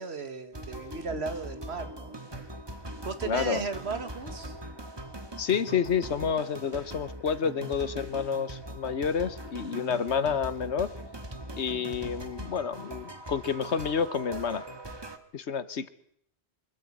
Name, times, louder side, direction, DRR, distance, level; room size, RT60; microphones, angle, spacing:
voice 1, 0.0-2.2 3.1-4.6, right 4 dB, 75° right, 9 dB, 1.9 m, -35 dB
sound 1, 0.5-15.2, right 1 dB, 25° right, 1.7 m, -41 dB
voice 2, 3.2-3.6 5.4-10.9 11.6-14.6 15.3-15.9, left 7 dB, 90° left, 14 dB, 1.4 m, -29 dB
25.0 x 14.0 x 8.7 m, 0.72 s
omnidirectional pair, 1.1 m